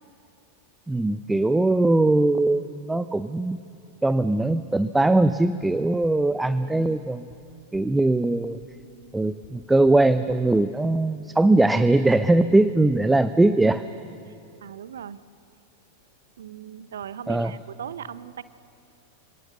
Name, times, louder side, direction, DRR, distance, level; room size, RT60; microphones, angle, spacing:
voice 1, 0.9-3.6 4.0-7.2 7.7-8.6 9.1-13.8 17.3-17.5, right 2 dB, 5° right, 12 dB, 0.6 m, -21 dB
sound 1, 5.6-5.7 6.0-6.1 6.4-6.5 6.8-6.9 7.3-7.4 7.7-7.8 8.2-8.3 8.6-8.7 9.0-9.1 9.4-9.5 9.8-9.9 10.3-10.4, left 10 dB, 50° left, 3.4 m, -51 dB
voice 2, 14.6-15.2 16.4-18.4, right 9 dB, 65° right, 17 dB, 0.7 m, -38 dB
28.5 x 18.0 x 6.9 m, 2.6 s
figure-of-eight pair, 90°, 0 cm